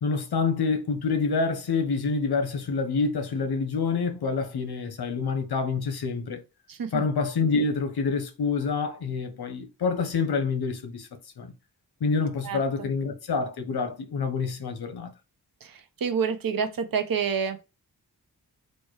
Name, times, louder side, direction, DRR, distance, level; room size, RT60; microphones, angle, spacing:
voice 1, 0.0-6.4 6.9-11.1 11.4-11.5 12.0-15.1, left 4 dB, 85° left, 0.9 m, -27 dB
voice 2, 16.0-17.7, right 6 dB, 65° right, 0.8 m, -27 dB
4.3 x 2.2 x 4.7 m
wide cardioid pair, 95°, 37 cm